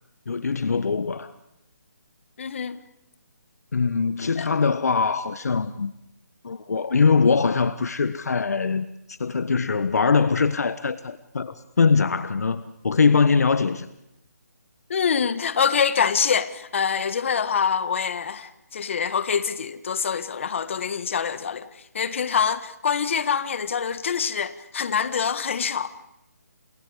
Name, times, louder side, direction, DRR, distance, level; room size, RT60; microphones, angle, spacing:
voice 1, 0.3-1.3 3.7-5.9 6.4-13.9, left 5 dB, 65° left, 1.3 m, -22 dB
voice 2, 2.4-2.8 4.4-4.5 14.9-25.9, left 6 dB, 45° left, 1.6 m, -25 dB
29.5 x 28.0 x 5.0 m
hypercardioid pair, 160°, 9 cm